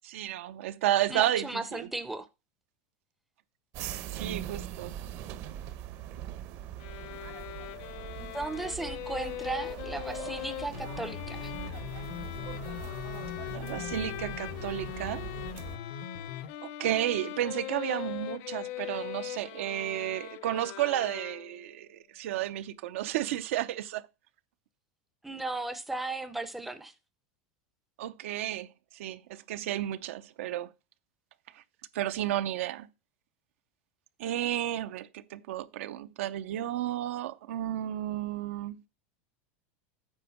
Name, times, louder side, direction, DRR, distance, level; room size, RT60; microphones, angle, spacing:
voice 1, 0.0-1.5 1.7-1.9 4.1-4.9 13.5-15.3 16.6-24.1 28.0-28.7 28.9-30.7 31.5-31.6 31.9-32.9 34.2-38.8, right 13 dB, 75° right, 0.7 m, -32 dB
voice 2, 1.1-2.3 8.2-11.5 25.2-26.9, right 2 dB, ahead, 0.5 m, -36 dB
sound 1, 3.7-15.8, right 11 dB, 40° right, 0.8 m, -42 dB
sound 2, 6.8-21.7, left 15 dB, 45° left, 0.6 m, -41 dB
sound 3, 10.7-16.5, left 8 dB, 85° left, 0.9 m, -41 dB
9.0 x 4.4 x 7.0 m
supercardioid pair, 170°, 7 cm